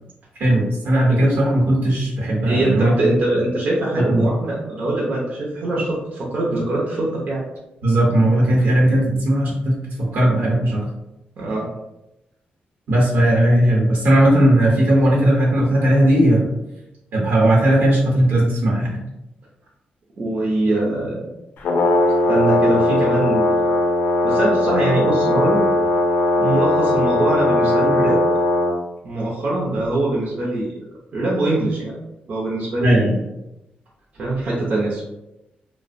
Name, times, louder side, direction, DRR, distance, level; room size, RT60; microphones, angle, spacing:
voice 1, 0.4-2.9 4.1-4.3 7.8-9.7 10.1-10.8 12.9-16.5 17.1-19.0 32.8-33.2, right 1 dB, 75° right, -3 dB, 0.9 m, -17 dB
voice 2, 2.4-7.4 11.4-11.7 20.2-21.3 22.3-23.7 24.2-25.6 26.4-28.2 29.0-30.7 31.1-32.0 32.3-33.1 34.2-35.0, right 2 dB, 50° right, -6 dB, 0.6 m, -22 dB
Brass instrument, 21.6-28.7, left 1 dB, 75° left, 0.4 m, -18 dB
2.4 x 2.0 x 2.5 m, 0.91 s
cardioid pair, 115°, 3 cm